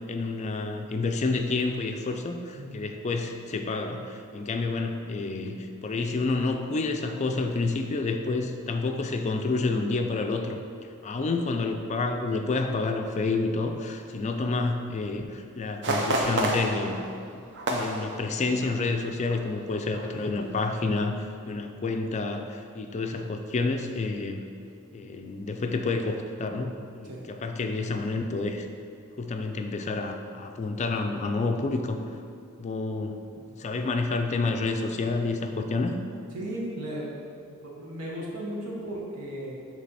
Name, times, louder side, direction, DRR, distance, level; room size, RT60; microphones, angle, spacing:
voice 1, 0.1-10.6 11.0-17.0 17.3-17.4 17.7-24.4 24.9-28.7 29.2-32.0 32.6-36.0, left 3 dB, 30° left, 5 dB, 0.3 m, -29 dB
voice 2, 2.5-2.9 27.0-27.2 36.3-37.1 37.4-39.5, right 1 dB, 85° right, -3 dB, 1.3 m, -36 dB
sound 1, 15.8-18.9 19.2-19.4 19.9-20.3 20.7-20.8, right 1 dB, 50° right, 0.7 m, -30 dB
8.3 x 3.3 x 4.1 m, 2.4 s
head